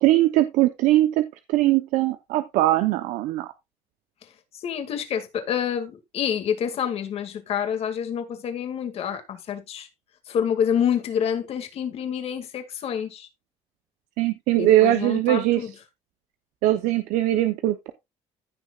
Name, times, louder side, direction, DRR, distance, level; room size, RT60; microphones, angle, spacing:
voice 1, 0.0-3.5 14.2-15.7 16.6-17.9, right 15 dB, 90° right, 0.8 m, -21 dB
voice 2, 4.5-9.9 10.3-13.3 14.6-15.7, left 8 dB, 50° left, 2.1 m, -27 dB
15.5 x 6.1 x 2.4 m
cardioid pair, 135°, 13 cm